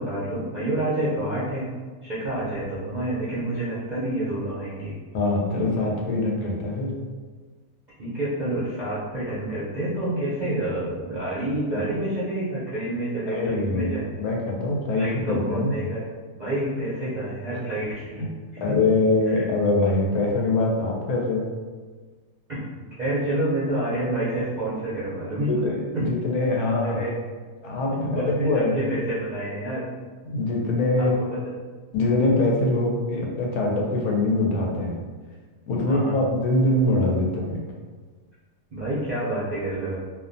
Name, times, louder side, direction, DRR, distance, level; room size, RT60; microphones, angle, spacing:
voice 1, 0.0-1.7 2.0-4.9 8.0-14.1 15.0-16.0 16.3-18.8 19.3-19.4 22.5-22.6 23.0-25.5 25.9-26.1 26.8-27.2 27.9-29.9 31.0-31.4 35.8-36.2 38.7-40.0, right 1 dB, 60° right, -10 dB, 0.4 m, -28 dB
voice 2, 5.1-6.9 11.7-11.8 13.3-15.9 18.2-18.3 18.6-21.5 25.5-27.0 27.6-28.8 30.3-31.2 31.9-35.0 35.7-37.6, left 2 dB, 90° left, -1 dB, 1.1 m, -23 dB
2.6 x 2.1 x 2.5 m, 1.5 s
omnidirectional pair, 1.6 m